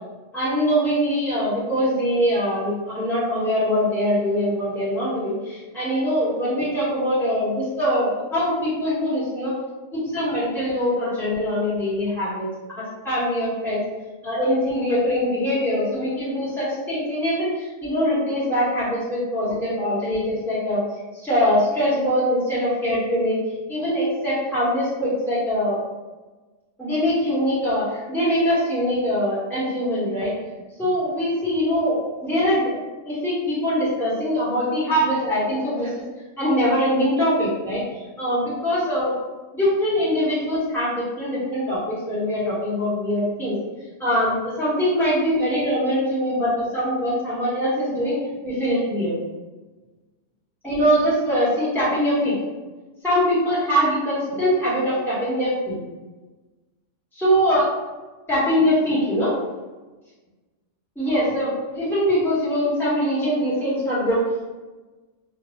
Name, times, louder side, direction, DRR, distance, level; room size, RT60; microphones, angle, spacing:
voice 1, 0.3-9.5 9.9-12.5 13.0-13.8 14.2-20.8 21.2-23.4 23.7-25.8 26.8-30.3 30.8-36.0 36.4-37.8 38.2-39.1 39.5-43.6 44.0-48.2 48.4-49.1 50.6-52.4 53.0-55.8 57.1-57.6 58.3-59.3 61.0-64.2, equal, ahead, -11 dB, 1.1 m, -22 dB
2.6 x 2.3 x 3.0 m, 1.2 s
omnidirectional pair, 1.3 m